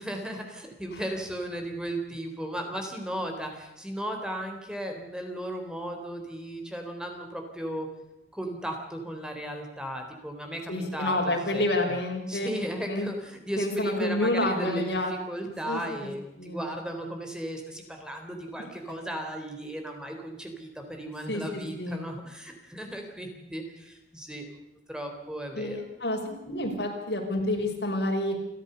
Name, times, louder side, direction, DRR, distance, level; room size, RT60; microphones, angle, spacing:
voice 1, 0.0-7.9 8.3-12.0 12.3-24.6 24.9-25.9, right 1 dB, 5° right, 3 dB, 3.6 m, -36 dB
voice 2, 10.7-12.5 12.9-13.1 13.6-15.1 15.4-15.8 16.4-16.6 21.3-22.0 25.5-28.4, left 1 dB, 75° left, 2 dB, 5.8 m, -29 dB
29.0 x 14.0 x 6.8 m, 0.92 s
head